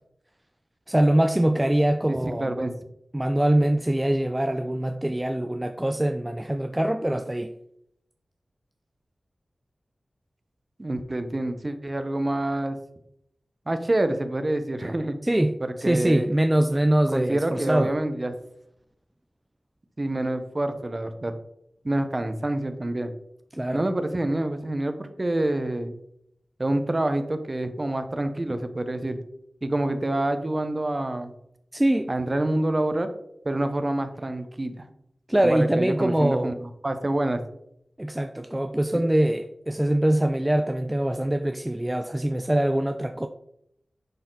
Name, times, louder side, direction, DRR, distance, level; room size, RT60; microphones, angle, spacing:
voice 1, 0.9-2.5 3.1-7.5 15.2-18.0 23.5-23.9 31.7-32.1 35.3-36.5 38.0-43.3, right 1 dB, 15° right, 7 dB, 0.5 m, -23 dB
voice 2, 2.1-2.7 10.8-12.8 13.7-15.2 15.8-16.3 17.1-18.3 20.0-21.3 21.8-23.1 23.7-26.0 26.6-29.2 29.6-31.3 32.1-33.1 33.4-34.9 35.4-37.4, right 1 dB, 35° right, 8 dB, 1.0 m, -27 dB
10.5 x 4.3 x 4.0 m, 0.75 s
wide cardioid pair, 75°, 0 cm